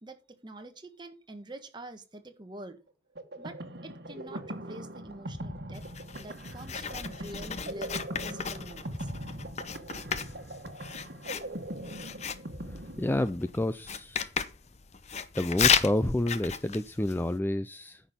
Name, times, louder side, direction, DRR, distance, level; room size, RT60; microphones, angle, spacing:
voice 1, 0.0-2.8 3.4-5.8 6.2-7.9 8.2-9.1, right 1 dB, 25° right, 6 dB, 1.6 m, -46 dB
sound 1, 3.2-13.7, right 1 dB, 60° right, 1.6 m, -41 dB
Writing, 5.7-17.4, left 7 dB, 40° left, 0.7 m, -34 dB
voice 2, 12.7-14.3 15.3-18.0, left 1 dB, 10° left, 13 dB, 0.4 m, -29 dB
9.9 x 6.3 x 5.3 m, 0.31 s
head